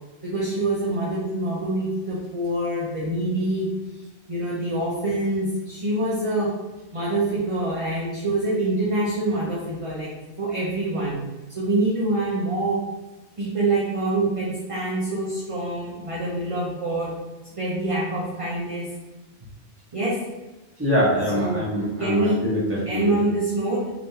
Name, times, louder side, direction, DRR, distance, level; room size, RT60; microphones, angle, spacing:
voice 1, 0.2-3.7 4.3-6.6 6.9-11.2 11.6-12.8 13.4-17.1 17.6-18.9 19.9-20.3 21.3-21.7 22.0-22.4 22.9-23.9, right 2 dB, 35° right, -6 dB, 0.6 m, -25 dB
voice 2, 20.8-23.2, equal, 10° right, -7 dB, 1.0 m, -24 dB
3.4 x 3.0 x 2.7 m, 1.1 s
omnidirectional pair, 1.3 m